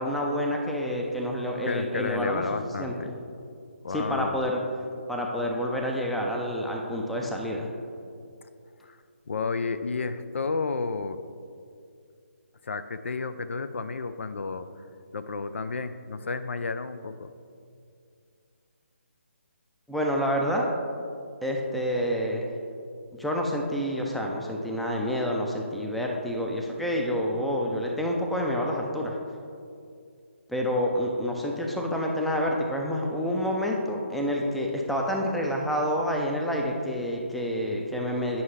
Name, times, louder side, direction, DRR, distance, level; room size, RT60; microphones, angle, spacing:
voice 1, 0.0-2.4 2.8-3.2 3.9-4.6 5.1-7.7 19.9-20.7 21.4-22.5 23.1-29.2 30.5-38.4, equal, ahead, -1 dB, 0.4 m, -28 dB
voice 2, 1.7-3.1 3.8-4.5 8.8-9.0 9.3-11.2 12.6-14.7 15.1-17.3, left 4 dB, 70° left, 11 dB, 0.4 m, -31 dB
9.4 x 5.7 x 3.2 m, 2.3 s
figure-of-eight pair, 150°, 7 cm